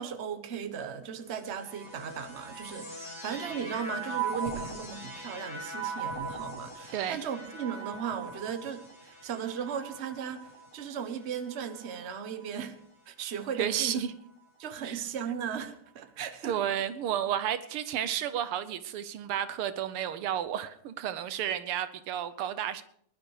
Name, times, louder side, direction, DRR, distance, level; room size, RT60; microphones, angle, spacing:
voice 1, 0.0-12.8 13.1-14.0 14.6-16.6, right 8 dB, 40° right, 1.2 m, -37 dB
sound 1, 1.2-12.7 13.5-14.2, right 3 dB, 45° left, 8.5 m, -40 dB
voice 2, 13.6-14.1 14.8-15.0 16.4-22.8, right 10 dB, 85° right, 1.8 m, -32 dB
20.0 x 11.5 x 4.9 m
omnidirectional pair, 2.4 m